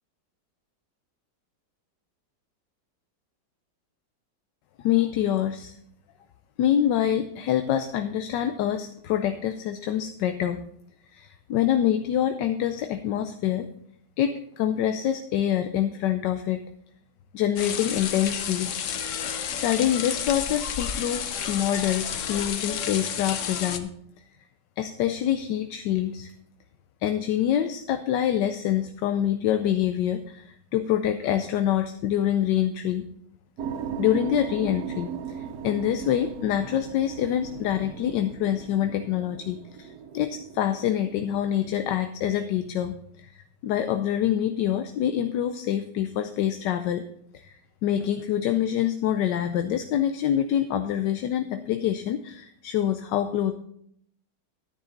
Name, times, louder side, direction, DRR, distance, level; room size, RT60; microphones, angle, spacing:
voice 1, 4.8-5.8 6.6-10.7 11.1-13.7 14.2-16.6 17.3-18.7 19.5-23.9 24.8-26.3 27.0-33.1 34.0-47.0 47.3-47.5 47.8-53.5, left 10 dB, 80° left, 8 dB, 1.3 m, -26 dB
sound 1, 17.6-23.8, left 8 dB, 55° left, 0.9 m, -31 dB
sound 2, 33.6-41.9, right 7 dB, 65° right, 1.1 m, -38 dB
10.0 x 10.0 x 3.9 m, 0.69 s
omnidirectional pair, 1.9 m